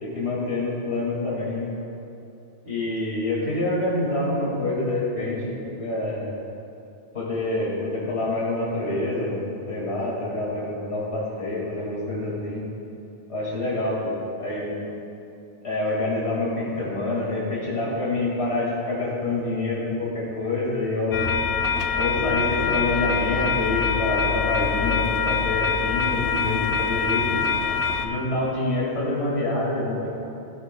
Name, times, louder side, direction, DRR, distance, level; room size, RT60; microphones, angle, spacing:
voice 1, 0.0-1.7 2.6-5.4 5.8-6.2 7.1-9.4 9.7-12.6 13.3-14.7 15.6-21.3 21.9-27.4 28.0-30.1, left 2 dB, 85° left, -6 dB, 2.4 m, -27 dB
sound 1, 21.1-28.1, left 5 dB, 60° left, 0.8 m, -24 dB
16.5 x 10.5 x 2.2 m, 2.7 s
omnidirectional pair, 1.1 m